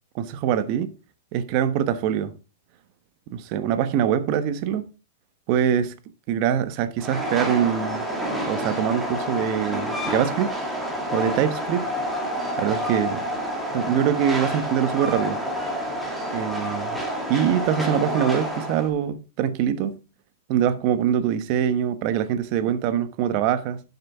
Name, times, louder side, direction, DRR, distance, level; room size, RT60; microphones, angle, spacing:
voice 1, 0.1-0.9 1.3-2.4 3.3-4.8 5.5-5.9 6.3-8.0 8.4-10.6 11.1-11.8 12.6-13.2 13.7-15.4 16.3-17.0 17.3-20.0 20.5-23.8, right 9 dB, 40° right, 1.1 m, -23 dB
Train, 7.0-18.9, equal, 5° right, 2.1 m, -28 dB
11.5 x 6.9 x 3.5 m
hypercardioid pair, 150°, 0 cm